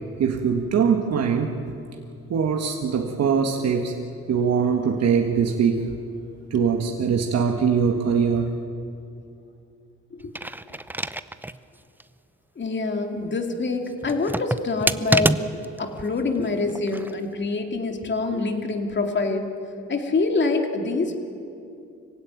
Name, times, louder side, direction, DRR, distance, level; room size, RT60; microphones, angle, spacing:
voice 1, 0.2-1.6 2.3-3.9 4.3-5.9 6.5-8.5, right 6 dB, 55° right, 3 dB, 1.6 m, -22 dB
sound 1, 10.2-11.6 12.0-12.1 14.0-15.8 16.7-17.1, right 1 dB, 5° right, 0.6 m, -26 dB
voice 2, 12.6-19.5 19.9-21.2, left 3 dB, 35° left, 4 dB, 2.7 m, -26 dB
25.0 x 16.5 x 9.5 m, 2.6 s
cardioid pair, 90°, 30 cm